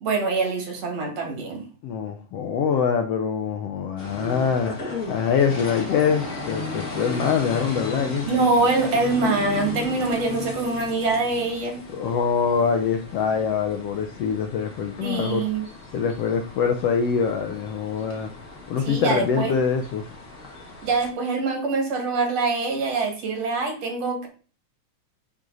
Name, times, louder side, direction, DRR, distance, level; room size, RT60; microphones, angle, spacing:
voice 1, 0.0-1.7 8.3-11.8 15.0-15.7 18.8-19.6 20.8-24.3, right 3 dB, 55° right, 2 dB, 2.8 m, -24 dB
voice 2, 1.8-4.8 5.1-8.3 11.9-15.4 15.9-18.3 18.7-20.0, left 6 dB, 75° left, 5 dB, 1.4 m, -24 dB
sound 1, 4.0-21.1, left 3 dB, 30° left, 1.5 m, -36 dB
9.6 x 4.8 x 3.9 m, 0.39 s
omnidirectional pair, 3.6 m